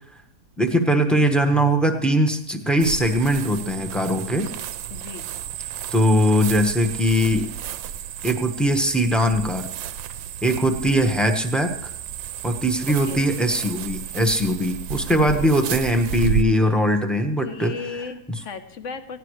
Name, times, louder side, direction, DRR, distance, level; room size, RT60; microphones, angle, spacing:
voice 1, 0.6-4.5 5.9-7.5 8.2-9.7 10.4-11.7 12.4-17.8, equal, ahead, 5 dB, 0.8 m, -21 dB
sound 1, 2.8-16.4, right 10 dB, 75° right, 1.4 m, -32 dB
voice 2, 4.9-5.3 13.0-13.3 15.2-15.5 17.4-19.2, left 5 dB, 45° left, 9 dB, 1.1 m, -35 dB
19.0 x 16.0 x 3.2 m, 0.75 s
omnidirectional pair, 2.2 m